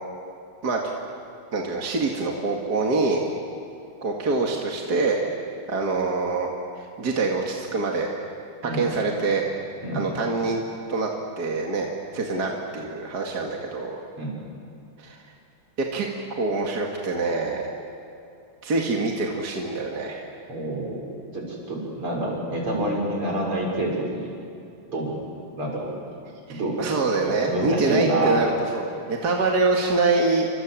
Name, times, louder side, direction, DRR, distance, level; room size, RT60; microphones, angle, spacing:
voice 1, 1.5-3.2 4.0-5.2 5.7-8.1 8.6-9.4 9.9-10.6 10.9-11.1 11.4-14.0 15.0-15.2 15.8-16.1 16.4-17.7 18.6-20.2 26.5-30.5, right 3 dB, 45° right, 0 dB, 2.6 m, -25 dB
voice 2, 9.8-10.2 14.2-14.4 20.5-21.0 21.3-24.3 24.9-25.2 25.6-25.9 26.6-26.8 27.2-28.4, right 1 dB, 75° right, -2 dB, 7.2 m, -27 dB
29.5 x 26.5 x 7.6 m, 2.6 s
omnidirectional pair, 2.4 m